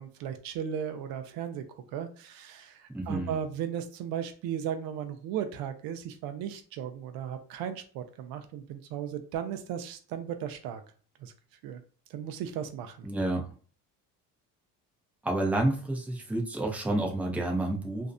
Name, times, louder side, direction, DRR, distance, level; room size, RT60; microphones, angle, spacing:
voice 1, 0.0-10.8 11.2-11.3 11.6-11.8 12.1-13.1, right 9 dB, 75° right, 8 dB, 0.5 m, -36 dB
voice 2, 2.9-3.4 13.0-13.4 15.2-18.1, right 1 dB, 5° right, 0 dB, 0.5 m, -29 dB
2.5 x 2.0 x 2.5 m, 0.41 s
cardioid pair, 105°, 36 cm